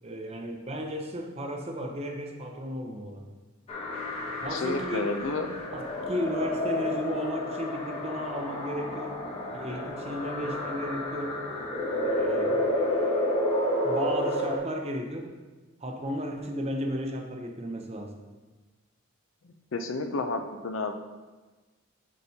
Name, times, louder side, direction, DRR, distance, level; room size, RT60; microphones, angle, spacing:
voice 1, 0.0-3.3 4.4-5.2 5.7-9.2 9.5-11.4 12.0-12.7 13.8-15.4 15.8-18.1, equal, 30° right, 3 dB, 0.6 m, -34 dB
sound 1, 3.7-14.6, left 1 dB, 30° left, 1.0 m, -30 dB
voice 2, 4.5-5.5 19.7-20.9, left 3 dB, 60° left, 6 dB, 0.5 m, -30 dB
8.4 x 5.1 x 2.8 m, 1.3 s
head